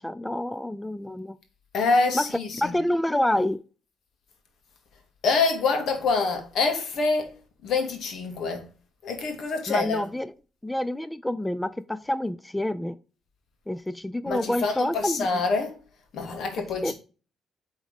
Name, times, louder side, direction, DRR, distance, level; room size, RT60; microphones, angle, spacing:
voice 1, 0.0-1.4 2.1-2.2 2.5-3.6 9.7-10.3 10.6-13.0 13.7-15.4 16.8-16.9, left 1 dB, 10° left, 0.3 m, -28 dB
voice 2, 1.7-2.7 5.2-7.3 7.6-8.6 9.0-10.1 14.3-15.8 16.1-16.9, left 4 dB, 70° left, 1.8 m, -26 dB
8.6 x 3.7 x 3.5 m
cardioid pair, 90°, 0 cm